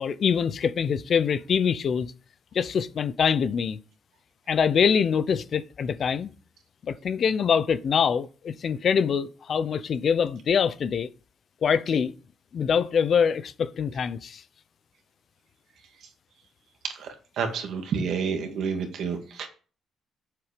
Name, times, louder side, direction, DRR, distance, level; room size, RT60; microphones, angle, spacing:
voice 1, 0.0-2.1 2.5-3.8 4.5-6.3 6.8-11.1 11.6-12.1 12.5-14.4, left 7 dB, 55° left, 0.7 m, -24 dB
voice 2, 17.4-19.5, right 6 dB, 70° right, 2.0 m, -29 dB
8.0 x 6.9 x 5.1 m
cardioid pair, 90°, 0 cm